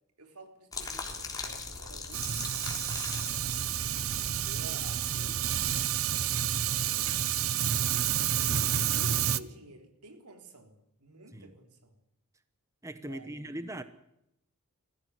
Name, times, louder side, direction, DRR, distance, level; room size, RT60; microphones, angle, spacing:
voice 1, 0.2-8.5 8.9-12.0 13.0-13.8, right 2 dB, 85° right, 5 dB, 3.9 m, -52 dB
sound 1, 0.7-5.7, left 3 dB, 15° left, 3.6 m, -41 dB
Fire, 2.1-9.4, right 10 dB, 65° right, 0.8 m, -29 dB
voice 2, 8.5-8.8 11.3-11.5 12.8-13.8, right 1 dB, 15° right, 10 dB, 1.0 m, -40 dB
21.0 x 15.5 x 9.7 m, 0.80 s
head